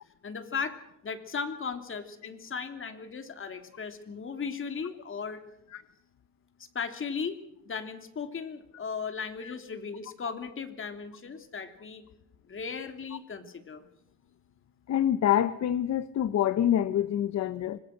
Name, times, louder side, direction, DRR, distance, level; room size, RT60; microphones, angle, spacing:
voice 1, 0.2-0.8 1.0-5.4 6.7-7.4 7.6-12.0 12.5-13.8, left 5 dB, 45° left, 7 dB, 3.2 m, -36 dB
voice 2, 14.9-17.8, left 10 dB, 65° left, 13 dB, 1.0 m, -26 dB
26.0 x 19.5 x 6.6 m, 0.84 s
cardioid pair, 90°, 30 cm